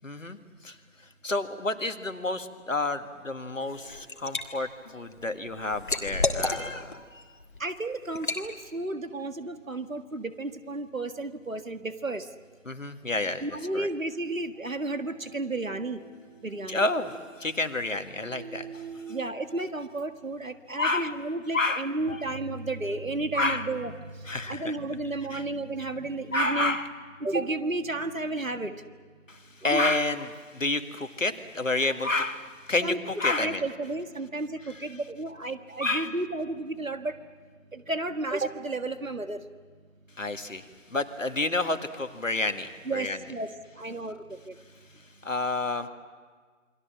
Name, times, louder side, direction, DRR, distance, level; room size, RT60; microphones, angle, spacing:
voice 1, 0.0-0.4 0.6-0.8 1.2-7.2 12.7-13.4 13.7-13.9 16.7-18.8 20.8-21.2 21.5-22.2 23.3-23.7 24.3-24.7 25.3-25.4 26.3-26.9 29.3-33.6 34.7-34.8 35.8-36.2 40.2-40.7 40.9-43.2 45.2-45.9, left 2 dB, 70° left, 8 dB, 1.9 m, -29 dB
Liquid, 3.6-4.4 4.9-7.0 7.4-7.6 8.1-8.5, left 3 dB, 40° left, 1.7 m, -30 dB
voice 2, 7.6-12.3 13.4-16.0 16.4-16.9 19.1-26.8 27.2-28.8 29.6-29.9 32.8-33.0 33.3-37.2 37.7-39.4 42.9-43.5 43.8-44.6, right 2 dB, 80° right, 9 dB, 1.7 m, -32 dB
sound 1, 14.5-19.8, right 5 dB, 35° right, 3.6 m, -47 dB
28.5 x 23.0 x 7.5 m, 1.5 s
figure-of-eight pair, 160°, 39 cm